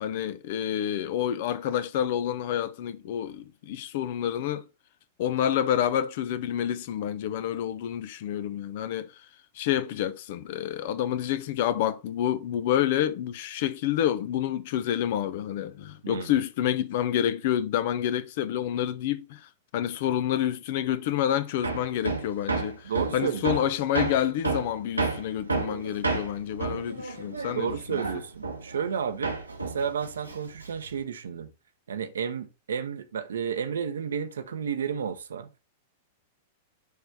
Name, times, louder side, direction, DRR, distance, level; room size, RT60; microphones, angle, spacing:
voice 1, 0.0-4.6 5.2-9.1 9.5-28.0, left 10 dB, 50° left, 0.6 m, -28 dB
Hammer, 21.6-29.0 29.2-31.0, right 3 dB, 80° right, 1.1 m, -31 dB
voice 2, 22.8-23.5 27.5-29.3 29.6-31.5 31.9-35.5, right 7 dB, 65° right, 0.8 m, -31 dB
6.6 x 3.3 x 4.7 m
figure-of-eight pair, 95°, 0 cm